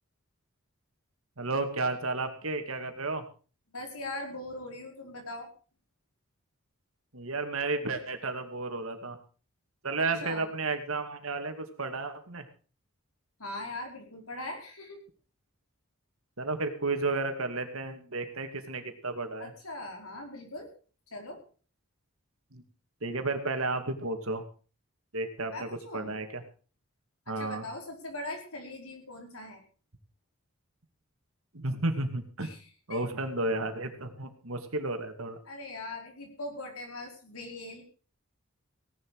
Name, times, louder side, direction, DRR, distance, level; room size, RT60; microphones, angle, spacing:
voice 1, 1.4-3.2 7.1-9.2 9.8-12.4 16.4-19.5 22.5-22.6 23.0-24.4 25.1-25.7 25.9-26.4 27.3-27.6 31.5-32.5 32.9-35.4, right 3 dB, 75° right, 6 dB, 2.4 m, -32 dB
voice 2, 3.7-5.5 10.2-10.5 13.4-15.0 19.4-20.7 21.1-21.4 25.5-26.1 27.3-29.6 32.4-33.0 35.4-37.8, left 2 dB, 85° left, 3 dB, 4.8 m, -41 dB
17.5 x 11.0 x 4.9 m, 0.39 s
head